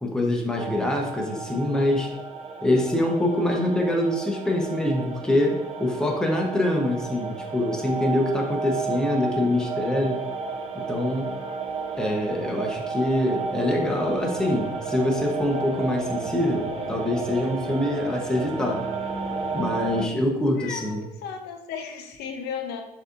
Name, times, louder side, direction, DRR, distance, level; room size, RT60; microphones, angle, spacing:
voice 1, 0.0-2.1 2.6-10.2 10.7-11.3 12.0-18.8 19.5-21.1, left 1 dB, 5° left, 0 dB, 0.7 m, -25 dB
sound 1, 0.6-20.1, right 4 dB, 35° right, 0.6 m, -32 dB
voice 2, 20.6-22.8, left 7 dB, 80° left, 4 dB, 0.6 m, -35 dB
6.2 x 2.7 x 2.5 m, 0.89 s
cardioid pair, 110°, 17 cm